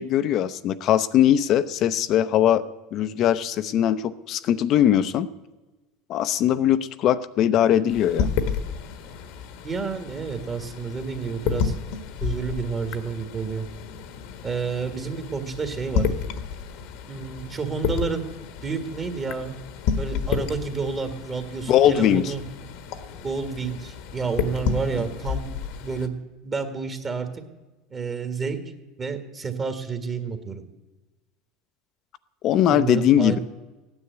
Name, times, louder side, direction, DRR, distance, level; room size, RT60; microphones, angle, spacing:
voice 1, 0.0-2.6 2.9-5.3 6.1-8.3 21.7-22.3 32.4-33.4, left 10 dB, 50° left, 13 dB, 0.7 m, -20 dB
sound 1, 7.9-26.1, left 6 dB, 65° left, 1.3 m, -31 dB
voice 2, 9.6-11.7 12.2-13.7 14.4-16.1 17.1-18.2 18.6-19.5 20.0-22.4 23.2-25.5 25.8-26.2 26.4-27.4 27.9-28.6 29.0-30.6 32.7-33.4, right 5 dB, 30° right, 6 dB, 1.7 m, -29 dB
15.5 x 9.7 x 8.1 m, 1.2 s
supercardioid pair, 110°, 0 cm